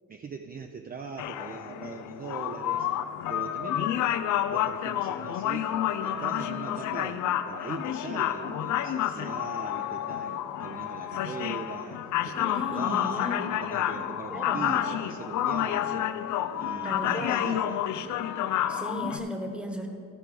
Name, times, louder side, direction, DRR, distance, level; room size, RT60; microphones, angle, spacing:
voice 1, 0.1-2.9 3.3-3.8 4.5-5.7 6.0-13.3 13.6-16.1 16.5-18.0, right 5 dB, 30° right, 5 dB, 0.5 m, -40 dB
sound 1, 1.2-19.2, left 11 dB, 75° left, 0.5 m, -30 dB
voice 2, 12.4-13.5 14.3-14.6 16.8-17.4 18.7-19.9, left 1 dB, 5° right, 3 dB, 1.2 m, -35 dB
13.5 x 4.6 x 5.2 m, 2.4 s
cardioid pair, 90°, 30 cm